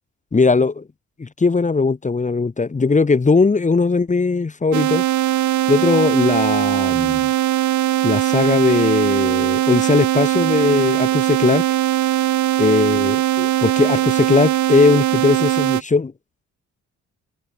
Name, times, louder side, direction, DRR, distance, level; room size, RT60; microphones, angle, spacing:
voice 1, 0.3-0.9 1.2-5.0 5.7-7.3 8.0-11.6 12.6-16.1, left 4 dB, 25° left, 2.0 m, -18 dB
sound 1, 4.7-15.8, right 13 dB, 70° right, 1.2 m, -19 dB
cardioid pair, 90°, 30 cm